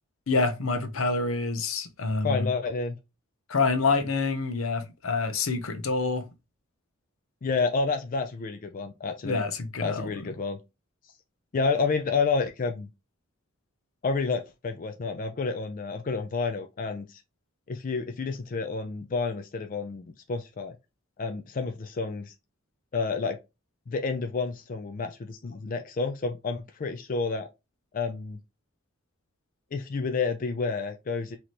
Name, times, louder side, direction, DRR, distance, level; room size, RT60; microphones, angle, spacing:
voice 1, 0.3-2.5 3.5-6.2 9.2-10.3, left 3 dB, 75° left, 0.8 m, -27 dB
voice 2, 2.2-3.0 7.4-9.4 9.8-10.6 11.5-12.9 14.0-17.2 17.7-20.8 21.2-22.3 22.9-23.4 23.9-27.5 27.9-28.4 29.7-31.4, left 4 dB, 40° left, 0.4 m, -29 dB
4.1 x 2.9 x 3.1 m
head